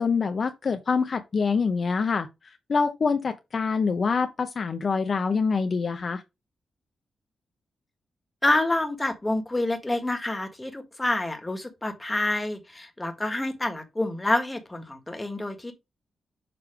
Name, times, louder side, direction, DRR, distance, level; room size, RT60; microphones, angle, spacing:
voice 1, 0.0-2.3 2.7-6.2, left 5 dB, 55° left, 0.7 m, -25 dB
voice 2, 8.4-15.7, left 2 dB, 15° left, 1.6 m, -27 dB
6.8 x 3.2 x 5.0 m
cardioid pair, 70°, 0 cm